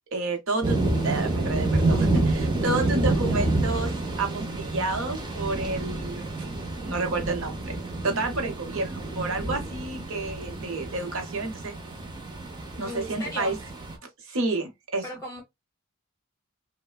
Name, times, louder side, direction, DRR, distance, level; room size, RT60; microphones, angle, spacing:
voice 1, 0.1-7.8 8.0-11.7 12.8-13.6 14.3-15.0, right 2 dB, 65° right, 0.8 m, -30 dB
sound 1, 0.6-13.9, right 2 dB, 20° right, 0.7 m, -28 dB
voice 2, 12.8-13.5 15.0-15.4, left 1 dB, 15° left, 1.1 m, -37 dB
3.2 x 2.1 x 2.2 m
head